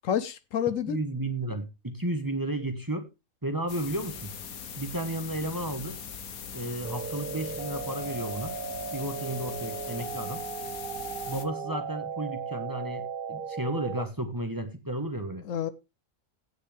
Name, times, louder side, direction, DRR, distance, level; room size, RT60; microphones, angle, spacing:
voice 1, 0.0-1.0 15.4-15.7, left 9 dB, 70° left, 1.1 m, -28 dB
voice 2, 0.9-3.1 3.4-4.3 4.8-5.9 6.5-8.5 8.9-10.4 11.3-15.4, right 1 dB, 15° right, 1.3 m, -33 dB
sound 1, 3.7-11.4, left 7 dB, 90° left, 1.5 m, -41 dB
sound 2, 6.8-14.1, right 6 dB, 45° right, 0.9 m, -36 dB
16.5 x 6.4 x 3.4 m
omnidirectional pair, 1.5 m